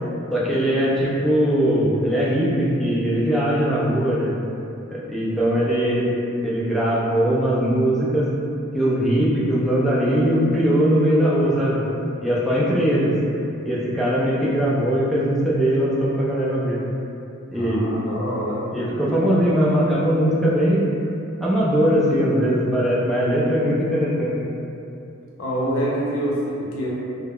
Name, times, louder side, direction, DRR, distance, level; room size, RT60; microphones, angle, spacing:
voice 1, 0.3-4.4 4.9-6.1 6.4-8.3 8.7-11.8 12.2-13.1 13.6-16.8 17.5-17.8 18.7-20.9 21.4-24.3, equal, ahead, -7 dB, 0.3 m, -20 dB
voice 2, 17.5-18.6 25.4-26.9, equal, 75° left, -6 dB, 0.6 m, -26 dB
2.2 x 2.0 x 3.4 m, 2.8 s
head